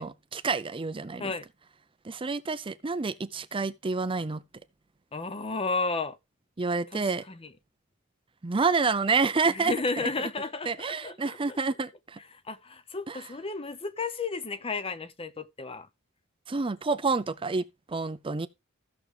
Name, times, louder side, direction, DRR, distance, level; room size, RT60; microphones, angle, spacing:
voice 1, 0.0-1.3 2.0-4.4 6.6-7.2 8.4-10.1 10.7-12.2 13.1-13.2 16.5-18.5, right 4 dB, 25° right, 0.5 m, -28 dB
voice 2, 5.1-6.2 6.9-7.5 9.5-11.6 12.3-15.9, left 3 dB, 25° left, 0.8 m, -33 dB
15.5 x 6.3 x 3.2 m
head